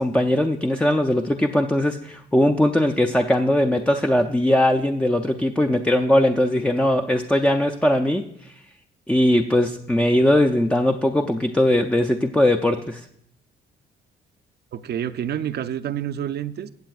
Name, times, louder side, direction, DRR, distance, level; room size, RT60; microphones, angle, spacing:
voice 1, 0.0-8.5 9.1-13.0, left 1 dB, 5° left, 6 dB, 0.4 m, -20 dB
voice 2, 14.7-16.7, right 10 dB, 55° right, 13 dB, 0.5 m, -28 dB
15.0 x 8.0 x 2.4 m, 0.71 s
cardioid pair, 90°, 20 cm